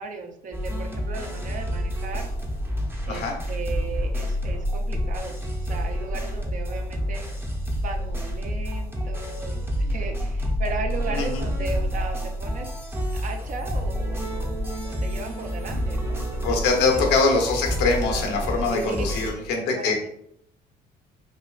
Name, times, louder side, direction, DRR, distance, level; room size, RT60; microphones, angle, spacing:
voice 1, 0.0-2.3 3.0-7.2 7.8-12.7 13.1-16.6 16.9-17.0 18.7-19.1 19.3-19.4 19.7-20.1, right 4 dB, 50° right, 4 dB, 0.7 m, -36 dB
sound 1, 0.5-19.3, equal, 15° right, 0.7 m, -28 dB
voice 2, 11.1-11.4 16.4-20.1, left 3 dB, 80° left, 1 dB, 1.0 m, -23 dB
5.4 x 2.3 x 2.4 m, 0.70 s
cardioid pair, 110°, 17 cm